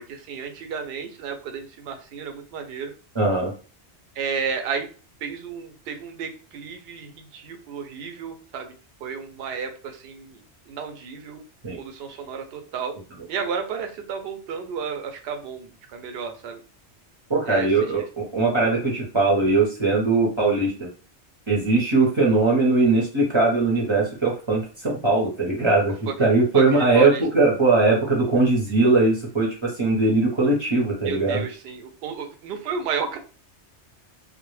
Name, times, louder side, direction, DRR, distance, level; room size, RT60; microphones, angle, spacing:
voice 1, 0.0-2.9 4.2-4.9 5.2-8.7 9.0-11.4 11.8-13.0 13.3-16.6 17.5-17.7 26.1-26.2 26.5-27.2 31.1-33.2, right 6 dB, 65° right, 5 dB, 0.7 m, -32 dB
voice 2, 3.1-3.5 11.6-11.8 17.3-20.9 21.5-25.9 26.2-31.4, right 3 dB, 30° right, -3 dB, 0.6 m, -20 dB
2.1 x 2.0 x 3.0 m, 0.37 s
omnidirectional pair, 1.2 m